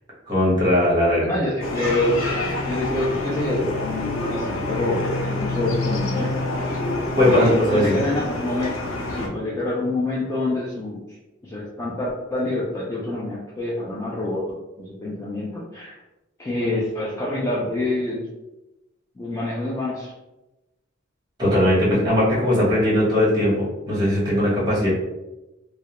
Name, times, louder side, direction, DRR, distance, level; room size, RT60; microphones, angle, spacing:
voice 1, 0.3-1.3 7.2-8.0 21.4-24.9, left 1 dB, 20° right, -7 dB, 1.1 m, -19 dB
voice 2, 1.3-2.4 2.7-6.3 7.2-11.0 11.4-14.5 14.8-15.9 16.4-18.2 19.2-20.1, left 2 dB, 15° left, -5 dB, 0.3 m, -26 dB
sound 1, 1.6-9.3, left 2 dB, 85° left, 0.5 m, -27 dB
2.3 x 2.0 x 2.9 m, 1.0 s
head